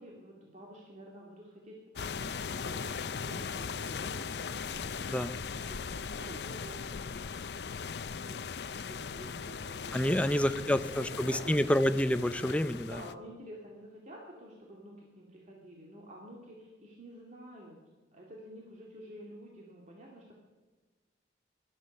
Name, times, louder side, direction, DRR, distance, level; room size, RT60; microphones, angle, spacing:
voice 1, 0.0-5.2 5.6-7.0 8.1-8.4 8.6-11.7 12.9-17.8 18.1-20.3, equal, 45° right, -2 dB, 2.4 m, -49 dB
sound 1, 2.0-13.1, left 6 dB, 65° left, 0.5 m, -39 dB
voice 2, 9.9-13.0, left 1 dB, 10° left, 12 dB, 0.5 m, -28 dB
19.5 x 13.0 x 5.5 m, 1.3 s
head